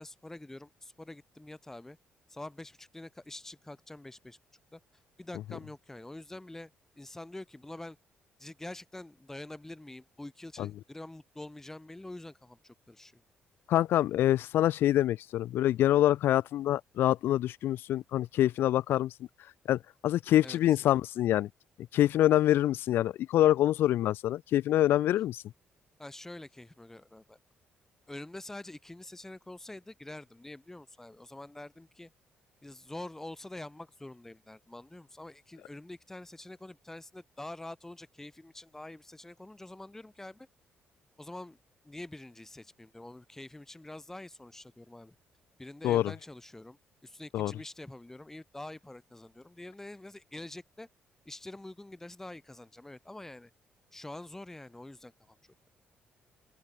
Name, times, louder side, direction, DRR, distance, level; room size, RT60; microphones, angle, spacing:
voice 1, 0.0-2.0 2.3-4.4 4.7-4.8 5.2-6.7 7.0-8.0 8.4-13.2 20.4-20.6 26.0-27.4 28.1-32.1 32.6-40.5 41.2-41.6 41.8-45.1 45.6-50.9 51.2-53.5 53.9-55.4, left 1 dB, 10° left, 2.9 m, -46 dB
voice 2, 13.7-19.1 19.7-21.5 21.9-25.4 45.8-46.0 47.3-47.5, left 13 dB, 75° left, 0.7 m, -25 dB
open air
cardioid pair, 95°, 4 cm